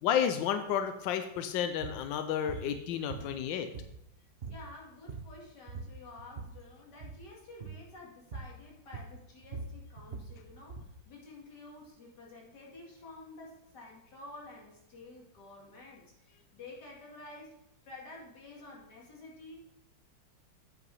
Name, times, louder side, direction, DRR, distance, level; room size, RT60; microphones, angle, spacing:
voice 1, 0.0-3.7, left 9 dB, 80° left, 8 dB, 1.3 m, -31 dB
sound 1, 1.7-2.0 2.5-2.7 3.1-4.1 4.4-4.7 4.9-5.4 5.7-6.6 6.9-7.2 7.6-7.8 8.3-8.6 8.9-11.0, right 4 dB, 40° right, 1.0 m, -42 dB
voice 2, 4.5-17.5 17.8-19.6, left 2 dB, 60° left, -2 dB, 2.8 m, -50 dB
9.4 x 5.6 x 5.4 m, 0.80 s
omnidirectional pair, 2.1 m